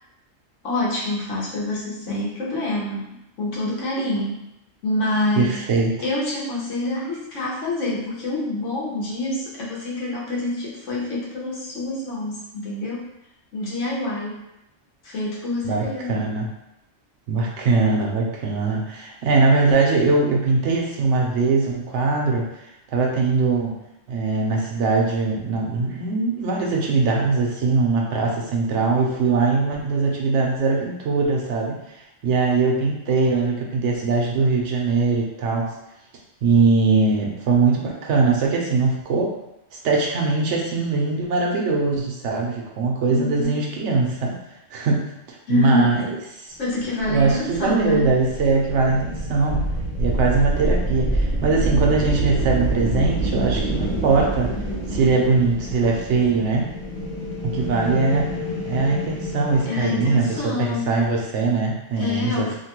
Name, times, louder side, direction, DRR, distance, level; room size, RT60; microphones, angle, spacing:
voice 1, 0.6-4.4 4.8-5.6 6.0-13.1 13.5-14.4 15.0-16.2 43.1-43.6 45.5-46.0 46.6-48.1 59.7-60.9 62.0-62.5, left 2 dB, 75° left, -5 dB, 1.2 m, -26 dB
voice 2, 5.4-5.9 15.6-16.5 17.3-23.8 24.1-35.7 36.4-39.3 39.7-44.3 44.7-45.0 45.3-46.6 47.1-49.7 50.0-54.6 54.9-56.7 57.4-58.3 58.6-62.5, right 4 dB, 75° right, -1 dB, 0.9 m, -21 dB
sound 1, 47.0-60.4, right 1 dB, 45° left, 1.2 m, -27 dB
2.9 x 2.2 x 2.9 m, 0.86 s
omnidirectional pair, 1.3 m